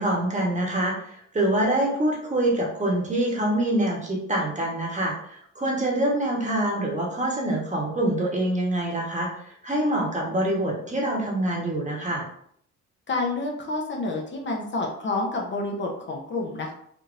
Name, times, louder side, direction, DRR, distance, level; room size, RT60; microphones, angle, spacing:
voice 1, 0.0-12.3, right 1 dB, 25° right, -2 dB, 1.1 m, -25 dB
voice 2, 13.1-16.7, left 2 dB, 40° left, 0 dB, 0.8 m, -29 dB
3.6 x 2.7 x 2.5 m, 0.66 s
cardioid pair, 90°, 30 cm